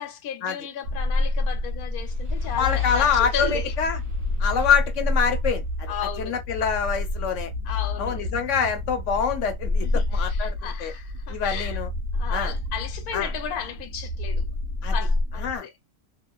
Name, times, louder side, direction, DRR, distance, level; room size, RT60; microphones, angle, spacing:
voice 1, 0.0-3.7 5.9-6.4 7.6-8.3 9.8-11.8 12.1-14.4 14.9-15.7, left 9 dB, 90° left, 1.1 m, -34 dB
sound 1, 0.8-15.6, left 2 dB, 60° right, 1.0 m, -28 dB
sound 2, 1.6-5.1, left 2 dB, 30° right, 0.7 m, -39 dB
voice 2, 2.6-4.0 4.4-5.9 6.2-7.5 8.0-10.5 10.8-10.9 11.3-11.9 12.3-12.6 13.1-13.3 14.8-14.9 15.4-15.7, left 6 dB, 60° left, 0.9 m, -25 dB
2.9 x 2.4 x 2.2 m
omnidirectional pair, 1.6 m